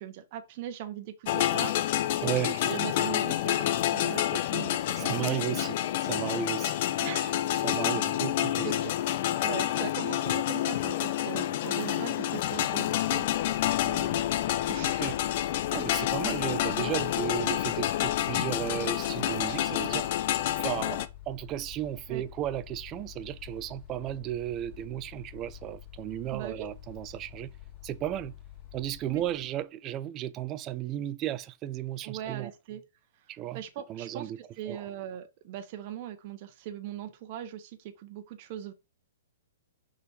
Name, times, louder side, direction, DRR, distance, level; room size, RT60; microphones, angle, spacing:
voice 1, 0.0-5.4 7.0-8.1 8.6-9.0 9.4-13.5 13.8-15.0 22.1-22.2 26.3-26.7 29.1-29.2 32.0-32.8 33.5-38.7, right 10 dB, 45° right, 1.0 m, -40 dB
sound 1, 1.3-21.1, left 12 dB, 50° left, 0.6 m, -28 dB
voice 2, 5.0-6.8 7.6-8.7 15.0-15.2 15.7-20.1 20.6-27.5 27.8-28.4 28.7-32.5 33.3-33.6 33.9-34.4 34.7-34.9, right 12 dB, 30° right, 0.5 m, -34 dB
Mechanical fan, 12.8-29.6, left 12 dB, 30° left, 2.5 m, -48 dB
5.4 x 4.0 x 4.7 m
hypercardioid pair, 125°, 0 cm